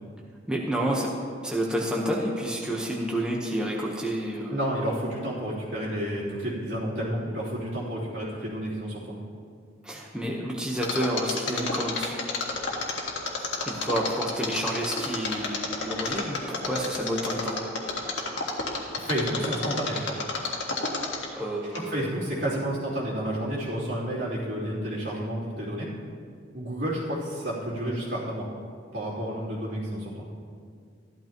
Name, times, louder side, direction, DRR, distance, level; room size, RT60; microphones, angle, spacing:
voice 1, 0.5-1.1 1.4-4.7 9.8-12.2 13.3-17.6 21.3-22.0, right 1 dB, 5° right, -3 dB, 1.0 m, -29 dB
voice 2, 4.5-9.1 19.0-20.2 21.7-25.9 26.5-28.5 28.9-30.1, right 1 dB, 70° right, -7 dB, 3.2 m, -30 dB
Mechanisms, 10.8-21.4 21.7-21.8, left 4 dB, 85° left, 1.5 m, -30 dB
14.0 x 12.0 x 3.0 m, 2.2 s
head